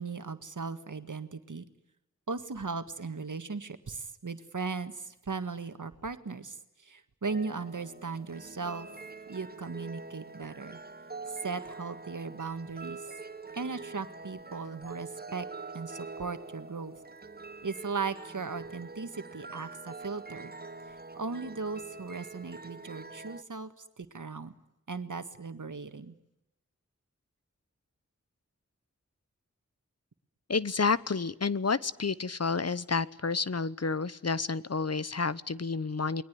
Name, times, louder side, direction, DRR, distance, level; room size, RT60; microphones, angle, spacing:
voice 1, 0.0-1.6 2.3-6.6 6.8-8.9 9.3-10.8 11.4-13.0 13.5-15.5 15.7-17.0 17.6-20.5 20.9-23.7 24.0-24.5 24.9-26.1, right 4 dB, 80° right, 10 dB, 1.8 m, -37 dB
sound 1, 7.3-23.4, right 3 dB, 30° right, 1.3 m, -45 dB
voice 2, 30.5-36.2, left 4 dB, 55° left, 18 dB, 0.9 m, -30 dB
29.0 x 21.5 x 9.6 m, 0.89 s
wide cardioid pair, 50°, 30 cm